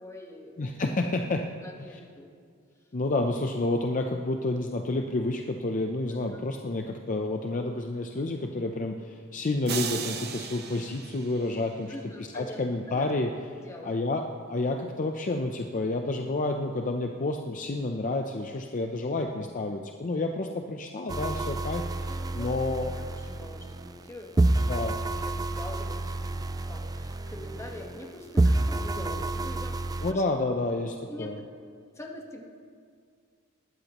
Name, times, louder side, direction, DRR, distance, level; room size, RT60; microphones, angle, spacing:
voice 1, 0.0-0.7 1.1-1.2 1.6-2.3 6.3-6.4 11.9-13.1 13.6-14.0 22.0-22.5 23.1-29.8 30.1-30.2 31.1-31.4 31.9-32.4, left 1 dB, 15° left, 1 dB, 1.3 m, -44 dB
voice 2, 0.6-1.4 1.9-2.0 2.9-11.9 12.3-14.2 14.5-22.9 24.7-24.9 30.0-31.4, left 2 dB, 35° left, 4 dB, 0.5 m, -30 dB
sound 1, 9.7-12.0, right 7 dB, 50° right, 1.0 m, -36 dB
sound 2, 21.1-24.1 24.4-28.1 28.4-30.1, right 2 dB, 15° right, 0.3 m, -29 dB
20.0 x 13.0 x 3.0 m, 2.2 s
head